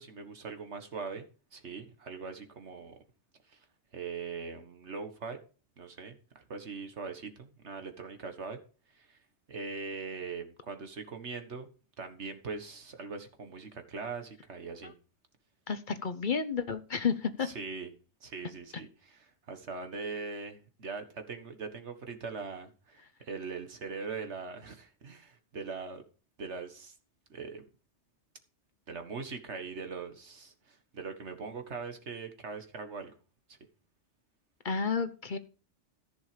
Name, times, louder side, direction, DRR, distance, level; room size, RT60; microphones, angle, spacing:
voice 1, 0.0-2.9 3.5-3.6 3.9-5.4 5.8-8.6 8.9-9.2 9.5-11.7 12.0-14.9 17.4-17.9 18.2-26.0 26.4-26.9 27.3-27.6 28.9-33.1 33.5-33.6, right 4 dB, 75° right, 1.8 m, -41 dB
voice 2, 15.7-17.5 34.6-35.4, left 5 dB, 45° left, 0.9 m, -31 dB
14.0 x 6.4 x 5.1 m
omnidirectional pair, 1.2 m